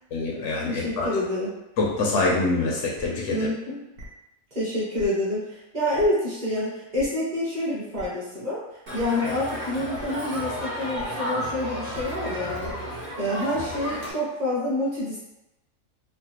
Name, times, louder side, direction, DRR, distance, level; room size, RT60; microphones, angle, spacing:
voice 1, 0.1-1.1 1.8-3.4, left 3 dB, 70° left, -2 dB, 0.9 m, -25 dB
voice 2, 0.7-1.6 3.3-3.8 4.5-8.6 8.9-12.8 13.2-15.2, left 1 dB, 35° right, -8 dB, 0.9 m, -27 dB
sound 1, 3.0-3.1 4.0-4.1 5.0-5.1 6.0-6.1 6.9-7.0 7.9-8.0 8.9-9.0 9.9-10.0 10.9-11.0 11.9-12.0 12.6-12.7, right 2 dB, 75° right, 1.0 m, -40 dB
Crowd, 8.9-14.1, equal, 60° right, 1.3 m, -32 dB
3.2 x 2.0 x 2.8 m, 0.92 s
omnidirectional pair, 1.4 m